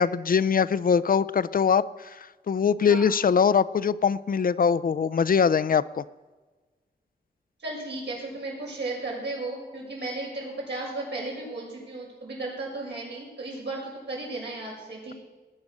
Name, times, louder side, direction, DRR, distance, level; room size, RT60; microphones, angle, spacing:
voice 1, 0.0-6.0, left 6 dB, 55° left, 16 dB, 0.5 m, -22 dB
voice 2, 2.8-3.1 7.6-15.2, right 2 dB, 85° right, -3 dB, 6.7 m, -35 dB
19.0 x 9.6 x 6.5 m, 1.3 s
wide cardioid pair, 100°, 18 cm